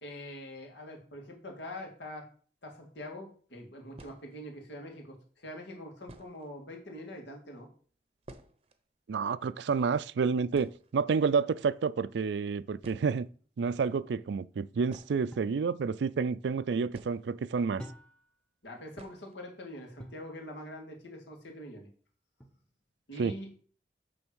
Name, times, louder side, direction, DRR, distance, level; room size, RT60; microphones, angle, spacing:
voice 1, 0.0-2.2 2.6-7.7 18.6-21.9 23.1-23.6, left 1 dB, 85° left, 2.3 m, -44 dB
sound 1, 3.0-3.1 3.9-4.6 5.5-5.6 6.0-6.6 6.9-7.0 7.2-7.4 7.7-8.8 9.1-9.2 9.5-9.8 10.1-10.2 10.5-11.4 12.4-12.5 12.8-13.4 14.8-15.9 16.9-17.7 18.0-18.1 18.9-19.4 19.7-19.8 20.2-20.3 20.7-21.1, right 1 dB, 35° right, 0.7 m, -53 dB
voice 2, 9.1-13.3 13.6-17.8 23.2-23.3, right 5 dB, 80° right, 0.4 m, -29 dB
sound 2, 15.3-15.6 17.8-18.4 20.0-20.3 22.4-22.9, equal, 5° left, 0.7 m, -48 dB
8.9 x 3.4 x 6.2 m
head